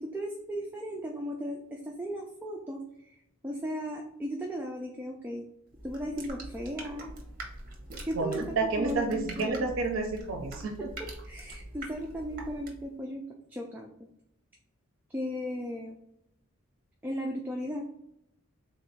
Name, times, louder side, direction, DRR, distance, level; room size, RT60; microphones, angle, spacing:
voice 1, 0.0-3.1 3.4-5.5 5.8-7.1 8.0-9.7 11.0-14.1 15.1-16.0 17.0-17.9, equal, 10° right, 0 dB, 0.3 m, -36 dB
sound 1, 5.7-13.0, right 2 dB, 40° right, 0.8 m, -44 dB
voice 2, 8.1-10.9, right 3 dB, 70° right, 3 dB, 0.5 m, -30 dB
3.5 x 2.6 x 4.0 m, 0.80 s
head